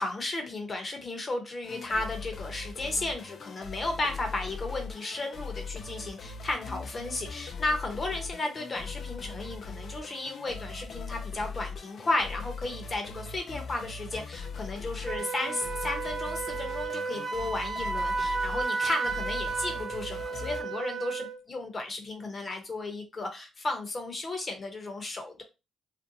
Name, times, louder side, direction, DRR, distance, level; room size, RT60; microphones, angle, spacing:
voice 1, 0.0-25.4, left 2 dB, 35° left, 0.7 m, -34 dB
sound 1, 1.6-20.6, left 4 dB, 55° left, 0.3 m, -40 dB
Wind instrument woodwind instrument, 15.1-21.4, right 4 dB, 40° right, 0.4 m, -33 dB
2.5 x 2.2 x 2.7 m
cardioid pair, 90°, 0 cm